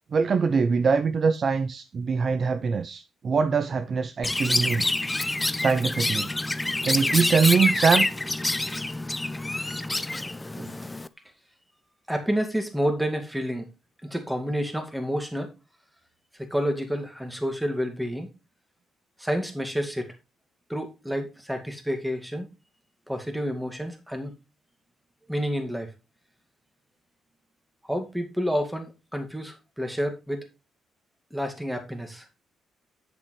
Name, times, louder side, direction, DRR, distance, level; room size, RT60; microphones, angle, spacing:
voice 1, 0.1-4.9 5.6-6.3 6.8-8.1 10.6-10.7, right 5 dB, 45° right, 0.6 m, -23 dB
Chirp tweet, 4.2-11.1, left 2 dB, 15° left, 0.5 m, -27 dB
voice 2, 12.1-13.7 14.0-15.5 16.4-18.3 19.2-20.1 20.7-22.5 23.1-24.3 25.3-25.9 27.9-30.5 31.3-32.2, equal, 5° right, 2.1 m, -29 dB
8.3 x 6.8 x 3.2 m
cardioid pair, 90°, 0 cm